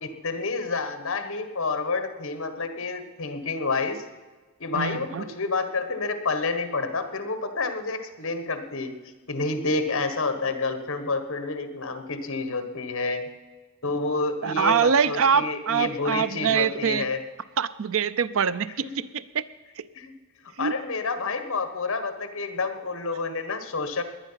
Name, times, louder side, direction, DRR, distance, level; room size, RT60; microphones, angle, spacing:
voice 1, 0.0-4.0 4.6-8.9 9.3-13.2 13.8-17.2 19.9-20.1 20.6-24.0, left 3 dB, 65° left, 8 dB, 1.4 m, -29 dB
voice 2, 4.7-5.2 14.4-17.1 17.6-19.4 19.8-19.9 20.6-20.7, right 7 dB, 65° right, 15 dB, 0.5 m, -24 dB
18.0 x 11.0 x 5.7 m, 1.3 s
head